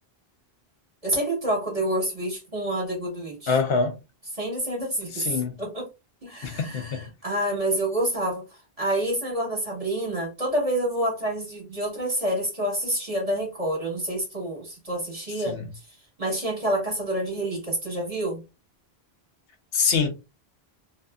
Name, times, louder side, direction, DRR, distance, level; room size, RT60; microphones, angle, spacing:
voice 1, 1.0-3.5 4.3-5.9 6.2-8.4 8.8-15.5 16.2-18.4, right 1 dB, 35° right, 1.3 m, -28 dB
voice 2, 3.5-4.0 5.1-5.6 6.4-7.1 15.5-15.7 19.7-20.1, left 5 dB, 70° left, 0.8 m, -25 dB
2.7 x 2.5 x 2.3 m
omnidirectional pair, 1.1 m